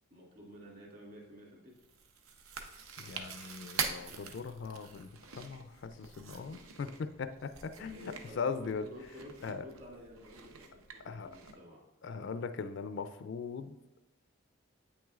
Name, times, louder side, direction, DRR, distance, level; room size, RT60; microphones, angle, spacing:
voice 1, 0.1-1.7 7.7-11.9, equal, 45° right, -3 dB, 2.2 m, -52 dB
Chewing mastication, 1.8-11.5, right 6 dB, 85° right, 0.7 m, -44 dB
voice 2, 3.0-8.9 9.4-9.6 11.0-11.4 12.0-13.7, left 5 dB, 55° left, 10 dB, 0.3 m, -40 dB
8.4 x 6.1 x 2.4 m, 1.0 s
head